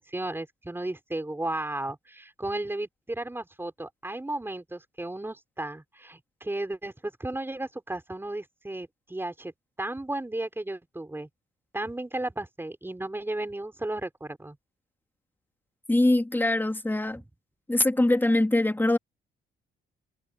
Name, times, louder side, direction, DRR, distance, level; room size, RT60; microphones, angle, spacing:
voice 1, 0.0-11.3 11.7-14.6 17.1-17.2, right 2 dB, 10° right, 4.8 m, -34 dB
voice 2, 15.9-17.2 17.7-19.0, left 1 dB, 10° left, 2.9 m, -23 dB
cardioid pair, 90°, 20 cm